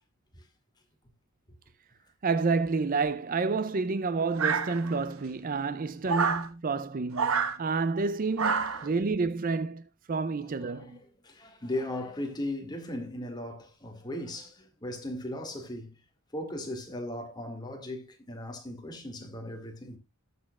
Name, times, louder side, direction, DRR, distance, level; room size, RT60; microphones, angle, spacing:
voice 1, 2.2-11.0, right 4 dB, 40° right, 0.5 m, -29 dB
sound 1, 4.4-5.1 6.1-6.5 7.1-7.6 8.4-8.9, right 5 dB, 70° right, 1.2 m, -27 dB
voice 2, 10.6-15.9 16.3-20.0, left 1 dB, 20° left, 2.0 m, -37 dB
18.0 x 6.7 x 2.3 m
head